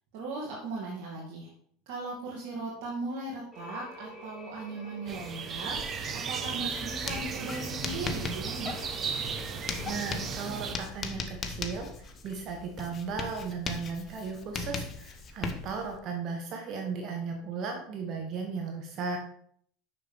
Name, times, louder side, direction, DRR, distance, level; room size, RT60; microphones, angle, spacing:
voice 1, 0.1-1.5 1.9-8.9, right 3 dB, 65° right, -5 dB, 2.6 m, -38 dB
sound 1, 3.5-10.3, equal, 10° left, 4.0 m, -48 dB
sound 2, 5.1-10.7, right 6 dB, 30° right, 1.0 m, -35 dB
Writing, 6.7-16.0, left 4 dB, 30° left, 1.1 m, -39 dB
voice 2, 9.8-19.2, right 5 dB, 50° right, 3 dB, 1.6 m, -36 dB
6.8 x 6.4 x 5.5 m, 0.63 s
supercardioid pair, 110°, 0 cm